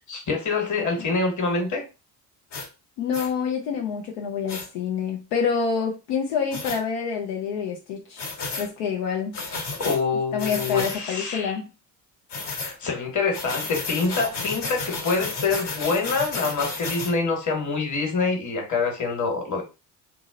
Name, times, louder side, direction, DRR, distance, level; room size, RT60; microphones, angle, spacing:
voice 1, 0.1-1.8 9.8-11.5 12.6-19.6, left 4 dB, 40° left, 1.4 m, -25 dB
sound 1, 2.5-2.7 3.1-3.3 4.5-4.7 6.5-6.8 8.2-8.7 9.3-10.0 10.4-11.0 12.3-12.7 13.3-17.1, left 3 dB, 60° left, 1.4 m, -32 dB
voice 2, 3.0-8.3 8.6-9.4 10.3-11.7, left 6 dB, 80° left, 0.8 m, -27 dB
2.8 x 2.0 x 3.7 m
supercardioid pair, 65°, 46 cm